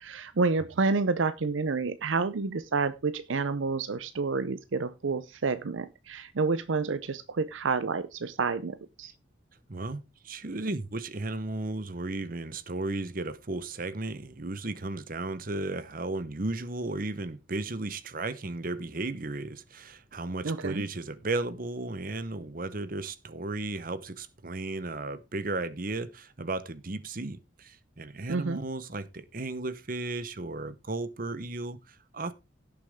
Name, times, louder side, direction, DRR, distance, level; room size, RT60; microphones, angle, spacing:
voice 1, 0.0-9.1 20.4-20.8 28.3-28.6, right 4 dB, 80° right, 0.6 m, -29 dB
voice 2, 9.7-32.3, right 2 dB, 45° right, 0.9 m, -35 dB
16.5 x 7.0 x 3.6 m
head